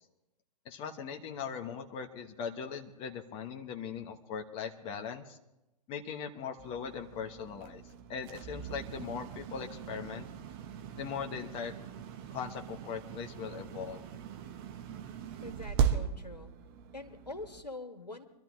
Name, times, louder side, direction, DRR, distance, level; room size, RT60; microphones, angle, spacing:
voice 1, 0.6-5.4 5.9-7.8 8.1-10.3 11.0-11.7 12.3-14.0, left 7 dB, 25° left, 5 dB, 1.2 m, -40 dB
sound 1, 6.6-17.6, right 8 dB, 35° right, 1.2 m, -38 dB
voice 2, 15.4-16.5 16.9-18.3, left 2 dB, 90° left, 5 dB, 1.8 m, -44 dB
24.5 x 12.5 x 3.2 m, 0.94 s
figure-of-eight pair, 115°, 21 cm